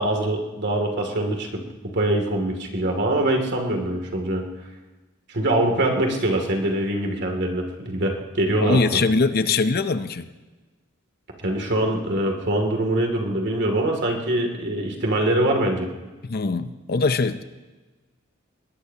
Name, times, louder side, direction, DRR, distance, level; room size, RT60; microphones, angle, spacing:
voice 1, 0.0-1.6 1.9-4.5 5.3-8.8 11.4-15.9, right 1 dB, 55° right, 2 dB, 2.6 m, -23 dB
voice 2, 8.6-10.3 16.2-17.4, left 3 dB, 50° left, 11 dB, 0.6 m, -22 dB
22.0 x 18.5 x 2.9 m, 1.2 s
head